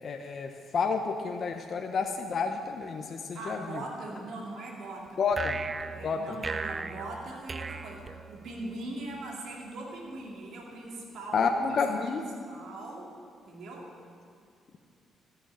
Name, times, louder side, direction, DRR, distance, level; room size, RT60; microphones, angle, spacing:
voice 1, 0.0-3.8 5.2-5.6 6.0-6.4 11.3-12.2, left 5 dB, 50° left, 3 dB, 0.9 m, -30 dB
voice 2, 3.3-5.2 5.9-12.1 12.5-13.1 13.5-13.9, right 2 dB, 70° right, -2 dB, 2.3 m, -41 dB
sound 1, 5.3-8.7, right 4 dB, 30° right, 0.6 m, -37 dB
13.5 x 7.1 x 8.8 m, 2.3 s
cardioid pair, 90°, 0 cm